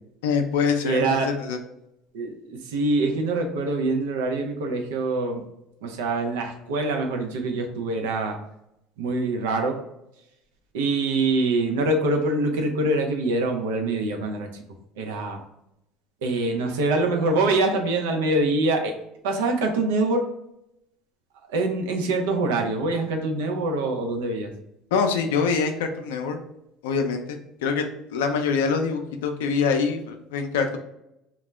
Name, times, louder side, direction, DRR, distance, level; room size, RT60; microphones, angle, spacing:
voice 1, 0.2-1.6 24.9-26.4 26.8-27.8 28.1-30.8, left 5 dB, 85° left, 5 dB, 0.4 m, -24 dB
voice 2, 0.8-1.3 2.1-5.4 5.8-8.4 9.0-9.8 10.7-14.6 15.0-15.4 16.2-18.9 19.2-20.2 21.5-24.5, right 2 dB, 85° right, 3 dB, 0.4 m, -24 dB
2.2 x 2.0 x 3.2 m, 0.83 s
supercardioid pair, 90°, 0 cm